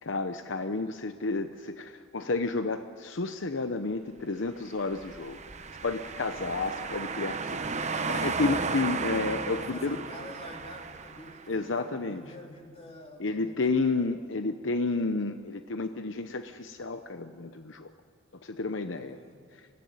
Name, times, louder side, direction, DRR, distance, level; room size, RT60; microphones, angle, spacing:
voice 1, 0.0-5.4 5.8-10.0 11.5-12.2 13.2-17.9 18.4-19.2, left 3 dB, 75° left, 9 dB, 0.9 m, -31 dB
sound 1, 4.8-11.6, right 4 dB, 35° right, 0.9 m, -34 dB
voice 2, 7.8-8.4 9.4-13.9 18.9-19.4, left 1 dB, 30° left, 1 dB, 3.3 m, -48 dB
25.0 x 17.0 x 9.5 m, 2.1 s
head